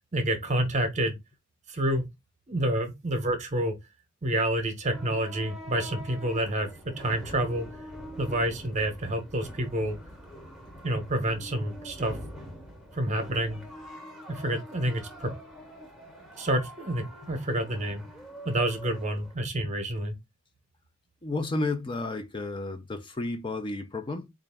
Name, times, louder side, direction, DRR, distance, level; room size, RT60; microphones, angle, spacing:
voice 1, 0.1-1.2 1.7-2.1 2.5-3.8 4.2-6.7 7.0-7.7 8.2-10.0 10.8-12.2 12.9-13.6 14.3-15.3 16.4-18.0 18.4-20.1, right 1 dB, 35° right, 0.9 m, -28 dB
sound 1, 4.9-19.3, equal, ahead, 0.9 m, -45 dB
voice 2, 21.2-24.3, left 2 dB, 25° left, 0.5 m, -32 dB
4.0 x 2.4 x 3.4 m
head